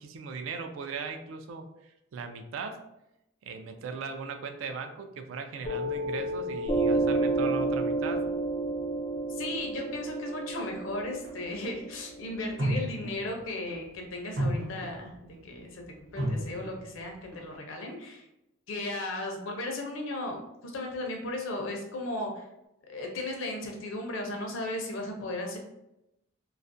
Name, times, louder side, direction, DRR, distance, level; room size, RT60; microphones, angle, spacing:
voice 1, 0.0-2.8 3.4-8.2, right 4 dB, 75° right, 6 dB, 0.3 m, -38 dB
Piano, 5.6-12.7, right 2 dB, 25° left, 0.3 m, -30 dB
voice 2, 9.4-15.1 15.4-15.8 16.1-18.3 18.7-20.4 20.6-22.5 22.9-25.6, left 2 dB, 75° left, 1 dB, 0.5 m, -35 dB
sound 1, 11.2-11.3 12.6-13.3 13.7-14.0 14.4-15.3 16.2-17.0 17.3-17.6, right 1 dB, 55° right, 0.7 m, -32 dB
2.3 x 2.1 x 2.5 m, 0.87 s
head